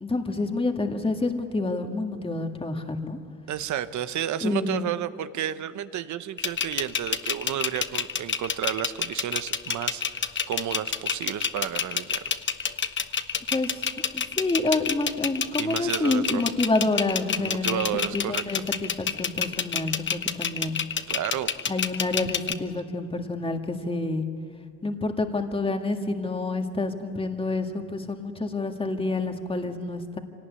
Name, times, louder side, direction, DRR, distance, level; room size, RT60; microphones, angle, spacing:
voice 1, 0.0-3.2 4.4-4.8 13.5-13.9 14.1-17.8 18.1-20.8 21.7-24.3 24.8-30.2, left 2 dB, 20° left, 5 dB, 1.9 m, -28 dB
voice 2, 3.5-12.3 15.6-16.5 17.4-18.6 21.1-21.5, right 10 dB, 70° right, 13 dB, 1.0 m, -32 dB
sound 1, 6.4-22.5, left 6 dB, 40° left, 1.1 m, -28 dB
25.0 x 18.0 x 9.8 m, 2.2 s
cardioid pair, 90°, 30 cm